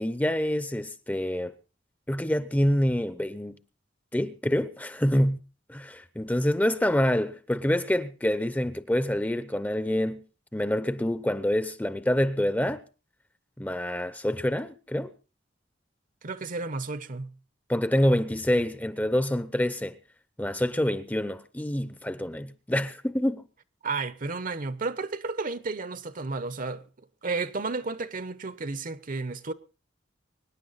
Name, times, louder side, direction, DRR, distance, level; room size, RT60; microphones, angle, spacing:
voice 1, 0.0-1.5 2.1-3.6 4.1-5.4 5.7-10.2 10.5-12.8 13.6-15.1 17.7-19.9 20.4-23.4, left 1 dB, 10° left, 0.8 m, -26 dB
voice 2, 16.2-17.4 23.8-26.8 27.2-29.5, right 3 dB, 50° right, 0.9 m, -32 dB
24.5 x 10.5 x 4.1 m
head